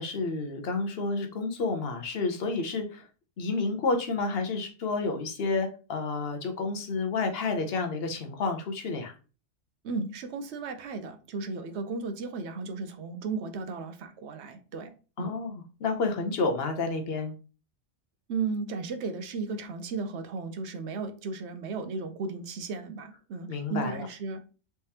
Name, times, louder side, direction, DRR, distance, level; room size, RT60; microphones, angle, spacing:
voice 1, 0.0-3.1 3.4-9.1 15.2-17.3 23.5-24.1, left 3 dB, 60° left, 5 dB, 0.8 m, -30 dB
voice 2, 9.8-14.9 15.2-15.4 18.3-24.4, right 4 dB, 65° right, 8 dB, 0.8 m, -35 dB
3.4 x 3.4 x 2.7 m, 0.35 s
omnidirectional pair, 1.4 m